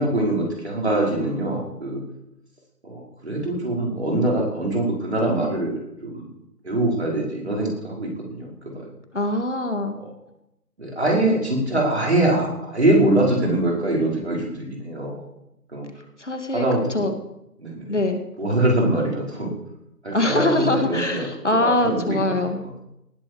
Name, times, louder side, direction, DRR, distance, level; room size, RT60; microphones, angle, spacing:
voice 1, 0.0-2.0 2.8-6.3 6.6-8.8 10.0-10.1 10.8-15.2 15.7-15.9 16.5-17.1 17.6-18.0 18.4-19.5 20.0-21.3 21.6-22.2 22.6-22.7, right 1 dB, 45° right, -2 dB, 5.4 m, -23 dB
voice 2, 9.1-10.0 16.2-16.7 16.9-17.1 17.9-18.2 20.1-22.6, left 2 dB, 45° left, 6 dB, 2.2 m, -22 dB
18.5 x 14.0 x 4.8 m, 0.84 s
figure-of-eight pair, 170°, 47 cm